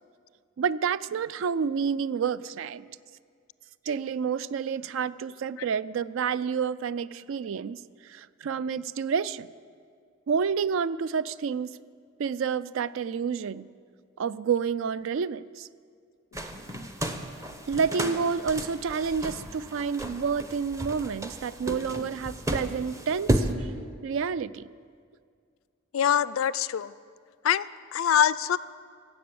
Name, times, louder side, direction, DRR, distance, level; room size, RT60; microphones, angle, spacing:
voice 1, 0.6-2.9 3.9-9.5 10.3-11.7 12.2-13.7 14.2-15.7 17.7-23.7 24.0-24.7, right 6 dB, 65° right, 18 dB, 0.3 m, -29 dB
sound 1, 16.3-23.5, right 1 dB, 15° right, 0.7 m, -33 dB
voice 2, 25.9-26.9 27.4-28.6, left 9 dB, 70° left, 18 dB, 0.3 m, -24 dB
17.0 x 7.7 x 6.9 m, 2.1 s
head